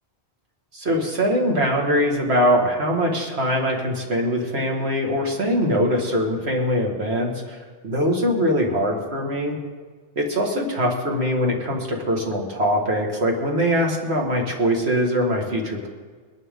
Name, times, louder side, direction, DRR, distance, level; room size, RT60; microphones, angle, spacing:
voice 1, 0.7-7.6 7.8-9.6 10.2-15.9, equal, 75° right, 0 dB, 2.2 m, -22 dB
21.5 x 11.0 x 3.7 m, 1.5 s
omnidirectional pair, 1.1 m